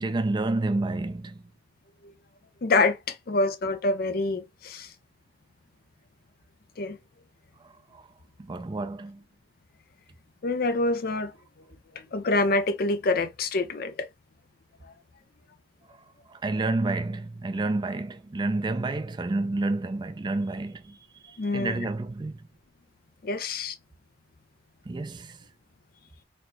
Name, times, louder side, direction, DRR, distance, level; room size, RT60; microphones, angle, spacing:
voice 1, 0.0-1.4 7.9-8.0 8.4-9.2 16.3-22.4 24.9-25.4, right 2 dB, 25° right, 0.4 m, -29 dB
voice 2, 2.6-4.9 6.8-7.0 10.4-11.3 12.0-14.1 21.4-21.9 23.2-23.7, left 2 dB, 55° left, 0.6 m, -26 dB
4.2 x 2.0 x 2.7 m
head